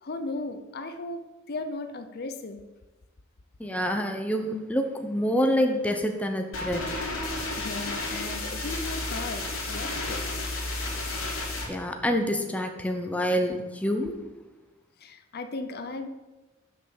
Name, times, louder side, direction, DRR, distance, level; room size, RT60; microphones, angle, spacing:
voice 1, 0.0-2.6 7.2-10.4 15.0-16.1, left 2 dB, 50° left, 9 dB, 0.6 m, -36 dB
voice 2, 3.6-6.9 11.7-14.2, equal, 5° left, 4 dB, 0.7 m, -27 dB
sound 1, 6.5-11.7, left 2 dB, 70° left, 2.8 m, -32 dB
6.6 x 5.5 x 7.1 m, 1.1 s
head